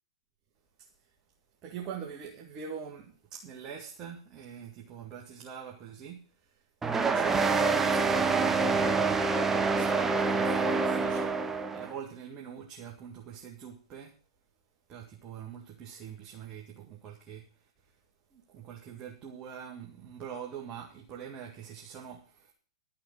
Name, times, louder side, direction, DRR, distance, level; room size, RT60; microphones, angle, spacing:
voice 1, 1.6-6.2 6.9-11.4 11.7-14.1 14.9-17.5 18.3-22.5, right 8 dB, 30° right, 1 dB, 2.0 m, -43 dB
sound 1, 6.8-11.9, right 4 dB, 10° right, 0.9 m, -26 dB
12.5 x 5.9 x 8.7 m, 0.42 s
figure-of-eight pair, 110°, 3 cm